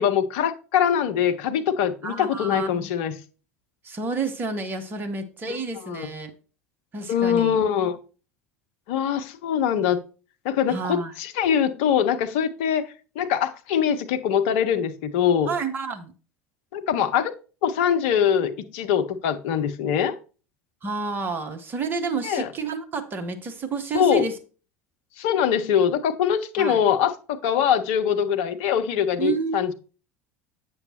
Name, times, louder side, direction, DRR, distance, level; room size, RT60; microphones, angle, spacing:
voice 1, 0.0-3.1 5.5-5.6 5.8-6.1 7.1-8.0 8.9-10.0 10.4-12.9 13.2-15.5 16.7-17.3 17.6-20.1 22.2-22.5 23.9-24.3 25.2-29.7, left 8 dB, 55° left, 0.7 m, -23 dB
voice 2, 2.0-2.9 3.8-6.3 6.9-7.6 10.7-11.1 15.5-16.1 20.8-24.3 26.6-26.8 29.2-29.6, right 4 dB, 30° right, 1.0 m, -30 dB
8.1 x 6.9 x 2.9 m
figure-of-eight pair, 70°, 7 cm